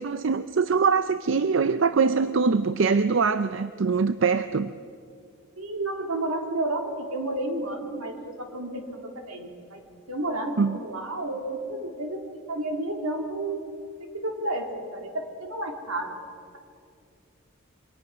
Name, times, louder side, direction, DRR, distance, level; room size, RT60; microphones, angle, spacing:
voice 1, 0.0-4.7 10.6-10.8, right 5 dB, 60° right, 12 dB, 0.5 m, -23 dB
voice 2, 5.6-9.8 10.1-12.2 12.5-13.6 14.0-16.1, right 1 dB, 85° right, 2 dB, 3.3 m, -31 dB
27.5 x 23.5 x 6.3 m, 2.4 s
head